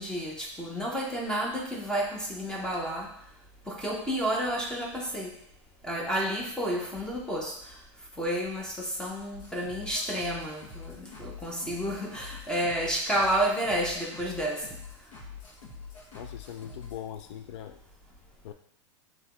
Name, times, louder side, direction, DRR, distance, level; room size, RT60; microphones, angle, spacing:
voice 1, 0.0-3.1 3.7-5.3 5.8-7.5 8.2-14.6, right 1 dB, 5° left, -1 dB, 0.6 m, -30 dB
sound 1, 9.3-17.0, left 5 dB, 85° left, 1.5 m, -45 dB
voice 2, 16.1-17.8 18.4-18.5, left 10 dB, 65° left, 8 dB, 0.4 m, -41 dB
5.5 x 3.0 x 3.0 m, 0.69 s
supercardioid pair, 145°, 16 cm